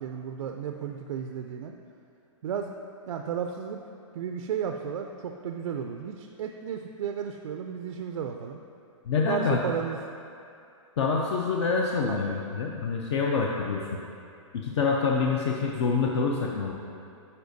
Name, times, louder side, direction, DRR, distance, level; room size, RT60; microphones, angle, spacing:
voice 1, 0.0-1.7 2.4-2.7 3.1-3.8 4.1-8.6 9.3-10.0 12.1-12.2, right 7 dB, 75° right, 4 dB, 0.4 m, -33 dB
voice 2, 9.1-9.6 11.0-13.9 14.5-16.7, left 5 dB, 55° left, 0 dB, 0.5 m, -26 dB
9.6 x 4.4 x 2.7 m, 2.6 s
hypercardioid pair, 150°, 17 cm